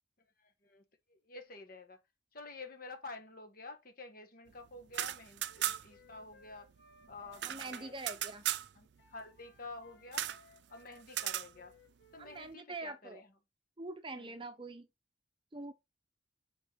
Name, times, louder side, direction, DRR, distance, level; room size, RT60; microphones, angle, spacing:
voice 1, 0.4-0.8 1.1-2.0 2.3-6.7 7.1-7.9 8.7-10.3 10.7-11.7 12.1-13.3 14.1-14.3, left 3 dB, 50° left, 1.5 m, -49 dB
sound 1, 4.8-6.1 6.3-6.4 6.7-8.7 10.1-10.4 11.1-11.5, right 13 dB, 65° right, 0.4 m, -37 dB
Wind instrument woodwind instrument, 5.5-8.7 9.0-12.4, left 2 dB, 65° left, 1.7 m, -63 dB
voice 2, 7.4-8.5 12.2-13.2 13.8-14.9 15.5-15.7, right 2 dB, 25° right, 0.7 m, -44 dB
6.5 x 4.6 x 3.5 m
head